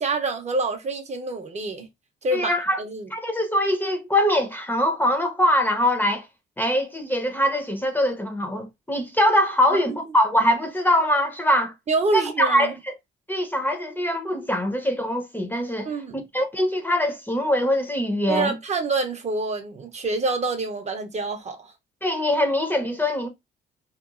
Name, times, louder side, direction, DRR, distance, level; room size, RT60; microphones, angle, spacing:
voice 1, 0.0-1.9 2.2-3.1 9.7-10.0 11.9-12.7 15.8-16.2 18.3-21.7, right 3 dB, 35° right, 0.5 m, -27 dB
voice 2, 2.3-2.8 3.1-6.3 6.6-11.7 12.1-12.9 13.3-15.9 16.3-18.6 22.0-23.3, equal, 10° left, 0.5 m, -23 dB
2.8 x 2.2 x 2.3 m
cardioid pair, 90°, 20 cm